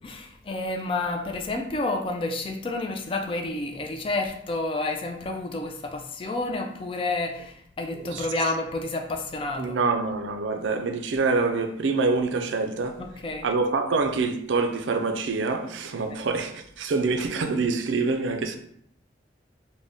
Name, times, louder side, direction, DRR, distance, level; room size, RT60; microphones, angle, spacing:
voice 1, 0.0-9.8 13.0-13.5, left 2 dB, 30° left, 0.3 m, -30 dB
voice 2, 9.6-13.0 13.4-18.6, right 4 dB, 90° right, 0.4 m, -26 dB
3.8 x 2.1 x 3.4 m
head